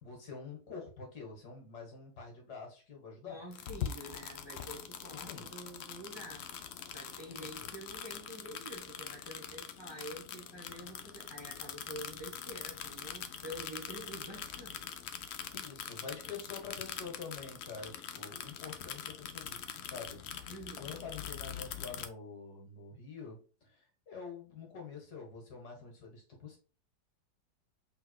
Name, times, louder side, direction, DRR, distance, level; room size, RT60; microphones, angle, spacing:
voice 1, 0.0-3.4 5.1-5.5 7.3-7.7 15.5-26.6, left 5 dB, 65° left, 2.1 m, -47 dB
voice 2, 3.3-6.5 6.9-14.8 20.5-20.9, equal, 15° right, 1.2 m, -47 dB
sound 1, 3.5-22.1, left 8 dB, 80° left, 0.5 m, -43 dB
5.7 x 3.6 x 2.2 m
omnidirectional pair, 1.8 m